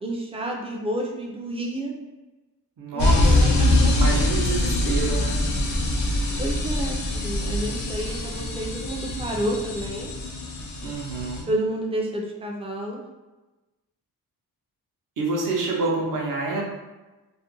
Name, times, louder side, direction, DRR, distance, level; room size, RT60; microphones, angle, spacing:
voice 1, 0.0-1.9 2.9-4.8 5.0-5.3 6.4-10.1 11.5-13.0, right 1 dB, 15° right, 0 dB, 0.4 m, -30 dB
voice 2, 2.8-3.3 3.9-5.4 10.8-11.5 15.2-16.6, right 3 dB, 60° right, -2 dB, 0.7 m, -27 dB
sound 1, 3.0-11.4, left 1 dB, 50° left, 0.5 m, -23 dB
2.5 x 2.1 x 2.9 m, 1.1 s
cardioid pair, 100°, 37 cm